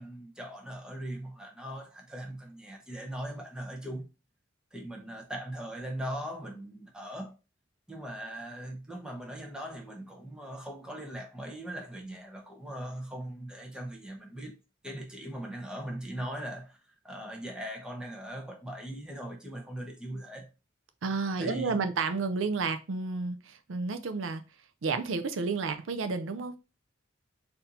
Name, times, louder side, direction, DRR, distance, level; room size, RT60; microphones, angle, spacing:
voice 1, 0.0-4.1 4.7-7.4 7.9-14.5 14.8-16.8 17.0-20.5 21.4-21.9, right 1 dB, 5° right, 0.9 m, -40 dB
voice 2, 21.0-24.4 24.8-26.5, right 4 dB, 80° right, 0.5 m, -31 dB
4.2 x 2.8 x 3.8 m
head